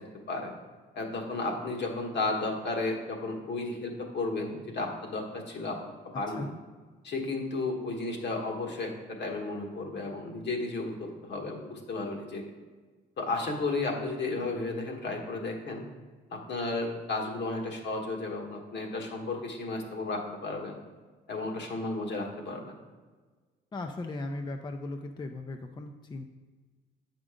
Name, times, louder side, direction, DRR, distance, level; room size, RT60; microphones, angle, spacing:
voice 1, 0.9-5.8 6.1-6.5 7.0-12.4 13.2-15.8 16.3-20.8 21.3-22.8, left 3 dB, 60° left, 1 dB, 1.3 m, -33 dB
voice 2, 23.7-26.2, left 2 dB, 20° left, 5 dB, 0.4 m, -37 dB
7.6 x 5.1 x 3.7 m, 1.3 s
cardioid pair, 90°, 20 cm